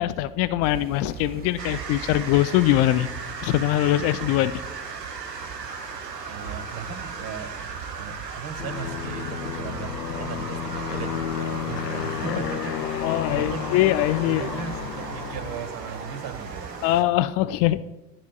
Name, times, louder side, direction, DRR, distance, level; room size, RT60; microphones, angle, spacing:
voice 1, 0.0-3.1 3.4-4.5 12.3-12.4 13.0-14.5 16.8-17.8, left 14 dB, 35° left, 14 dB, 0.4 m, -22 dB
sound 1, 0.6-17.0, right 7 dB, 20° right, 0.6 m, -42 dB
sound 2, 1.6-17.0, right 5 dB, 90° right, 0.9 m, -37 dB
voice 2, 6.3-13.7 14.2-16.8, right 6 dB, 45° right, 8 dB, 1.3 m, -37 dB
Aircraft, 8.6-15.9, left 9 dB, 85° left, 0.6 m, -32 dB
12.0 x 10.5 x 2.3 m, 0.96 s
figure-of-eight pair, 80°, 48 cm